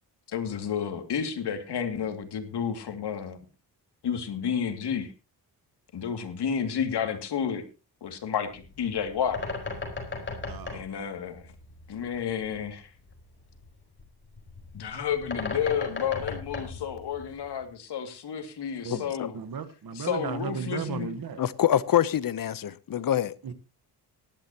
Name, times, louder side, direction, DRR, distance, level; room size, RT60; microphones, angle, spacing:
voice 1, 0.3-3.4 4.0-5.1 5.9-7.6 8.0-9.4 10.7-11.5 11.9-12.9 14.7-19.4 19.9-21.1, left 7 dB, 75° left, 2.5 m, -31 dB
Bird, 8.5-17.7, left 3 dB, 25° left, 4.8 m, -38 dB
voice 2, 10.4-10.8 18.8-21.4 23.4-23.5, right 6 dB, 55° right, 1.4 m, -35 dB
voice 3, 18.9-19.3 21.4-23.3, left 10 dB, 55° left, 0.9 m, -25 dB
18.5 x 12.0 x 3.0 m
cardioid pair, 110°, 41 cm